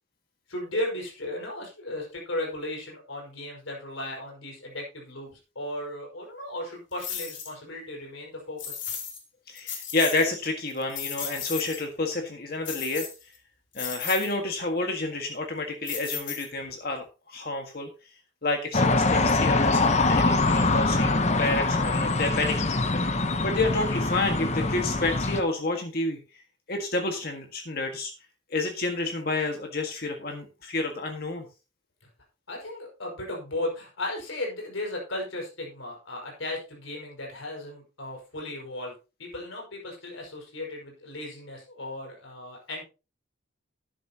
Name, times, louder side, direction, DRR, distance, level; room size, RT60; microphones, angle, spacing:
voice 1, 0.5-8.8 32.5-38.9 39.2-42.8, left 1 dB, 90° left, -1 dB, 5.6 m, -35 dB
sound 1, 7.0-7.5 8.6-9.2 9.6-10.3 10.7-11.8 12.6-13.4 13.7-14.3 15.9-16.7, left 8 dB, 75° left, 2.9 m, -35 dB
voice 2, 9.5-13.1 13.7-17.9 18.4-23.0 23.4-26.2 26.7-28.1 28.5-31.5, left 2 dB, 50° left, 3 dB, 1.8 m, -29 dB
sound 2, 18.7-25.4, left 2 dB, 35° left, 0.9 m, -24 dB
12.5 x 10.5 x 2.9 m, 0.31 s
head